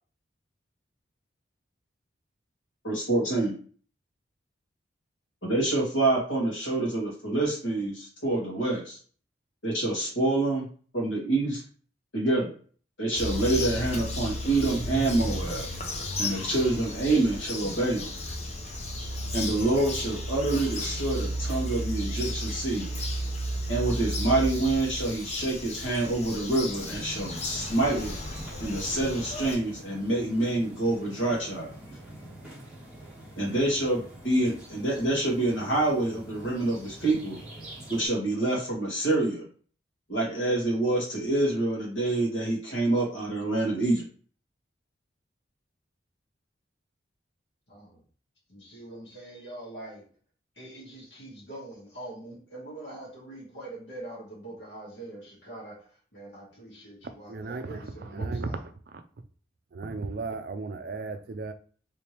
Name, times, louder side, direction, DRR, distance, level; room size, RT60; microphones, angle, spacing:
voice 1, 2.8-3.6 5.4-9.0 9.6-10.7 10.9-11.6 12.1-12.5 13.0-15.7 16.2-18.1 19.3-22.9 23.7-28.1 28.6-31.7 33.4-37.4 37.9-39.5 40.1-44.0, right 2 dB, 85° left, 1.8 m, -27 dB
Bird vocalization bird call bird song, 13.2-29.6, equal, 35° left, 0.6 m, -33 dB
sound 1, 26.5-38.1, right 1 dB, 5° right, 1.1 m, -45 dB
voice 2, 47.7-48.0 48.5-50.1 50.6-58.6, right 1 dB, 65° left, 1.7 m, -44 dB
voice 3, 57.3-59.0 59.7-61.5, right 3 dB, 50° right, 0.4 m, -35 dB
3.4 x 3.3 x 2.9 m
head